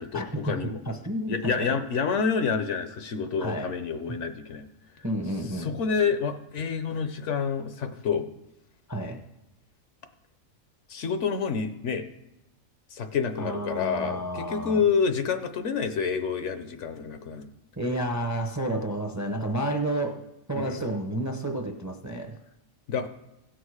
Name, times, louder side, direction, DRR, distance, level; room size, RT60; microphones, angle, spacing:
voice 1, 0.0-0.8 1.3-4.7 5.0-5.1 5.6-8.3 10.9-12.0 12.9-17.5 20.6-20.8 22.9-23.1, left 6 dB, 65° left, 8 dB, 1.0 m, -28 dB
voice 2, 0.9-1.7 3.4-3.7 5.0-5.8 8.9-9.2 13.4-14.8 17.8-20.2 20.5-22.4, right 1 dB, 15° right, 4 dB, 0.7 m, -30 dB
16.5 x 6.3 x 4.8 m, 0.93 s
omnidirectional pair, 1.4 m